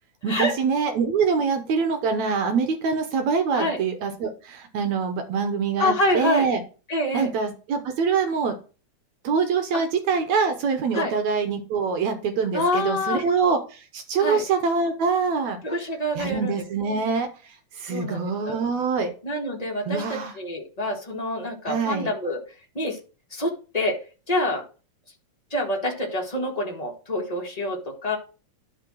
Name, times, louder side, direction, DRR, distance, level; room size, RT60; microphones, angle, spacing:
voice 1, 0.2-6.6 7.1-8.6 9.2-15.6 16.2-17.3 17.8-19.1 19.9-20.3 21.7-22.1, right 5 dB, 75° right, 7 dB, 2.2 m, -24 dB
voice 2, 5.8-6.5 6.9-7.3 9.7-9.8 10.9-11.1 12.5-13.2 14.2-14.4 15.6-16.6 17.9-18.6 19.2-22.4 22.7-23.0 23.3-24.0 24.3-24.6 25.5-28.2, left 1 dB, 25° left, 0 dB, 0.9 m, -26 dB
11.5 x 3.8 x 6.3 m, 0.35 s
omnidirectional pair, 3.4 m